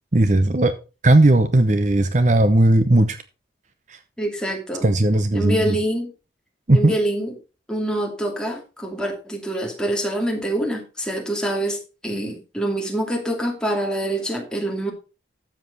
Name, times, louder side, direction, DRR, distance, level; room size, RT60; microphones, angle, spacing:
voice 1, 0.1-0.7 1.0-3.2 3.9-4.0 4.8-5.8 6.7-6.9, right 1 dB, 40° right, 11 dB, 0.8 m, -17 dB
voice 2, 4.2-4.9 5.3-6.1 6.7-7.3 7.7-14.9, right 1 dB, 5° left, 1 dB, 2.5 m, -25 dB
13.0 x 7.6 x 4.0 m, 0.31 s
head